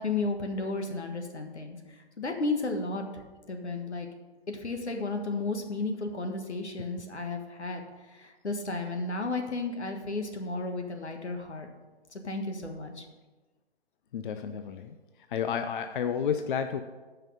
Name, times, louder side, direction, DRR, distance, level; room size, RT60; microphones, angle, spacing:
voice 1, 0.0-3.1 3.5-4.1 4.5-7.8 8.1-11.7 12.1-13.0, left 3 dB, 80° left, 4 dB, 1.6 m, -33 dB
voice 2, 14.1-15.0 15.3-16.8, left 7 dB, 50° left, 8 dB, 0.6 m, -31 dB
8.9 x 5.7 x 6.5 m, 1.2 s
figure-of-eight pair, 130°, 33 cm